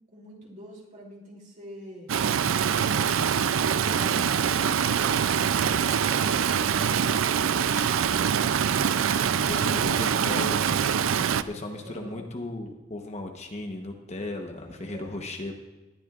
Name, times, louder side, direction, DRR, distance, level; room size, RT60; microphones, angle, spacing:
voice 1, 0.1-2.1 3.7-8.4 9.2-12.2 14.7-15.1, equal, 40° right, -2 dB, 3.0 m, -44 dB
Stream, 2.1-11.4, right 7 dB, 75° right, 0.4 m, -24 dB
voice 2, 9.5-10.6 11.5-15.5, left 1 dB, 35° left, 3 dB, 1.0 m, -36 dB
19.5 x 12.0 x 2.5 m, 1.2 s
head